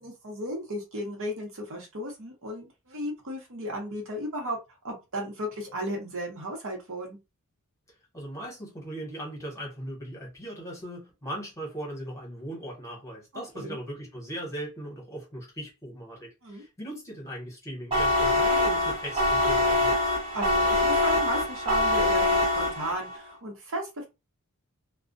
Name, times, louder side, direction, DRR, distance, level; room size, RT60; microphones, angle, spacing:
voice 1, 0.0-4.6 4.8-7.2 13.5-13.8 16.4-16.6 20.3-24.1, equal, 60° right, 0.9 m, -35 dB
voice 2, 8.1-20.0, right 1 dB, 15° left, 1.0 m, -39 dB
sound 1, 17.9-23.2, left 1 dB, 25° right, 0.9 m, -24 dB
2.3 x 2.1 x 2.5 m
head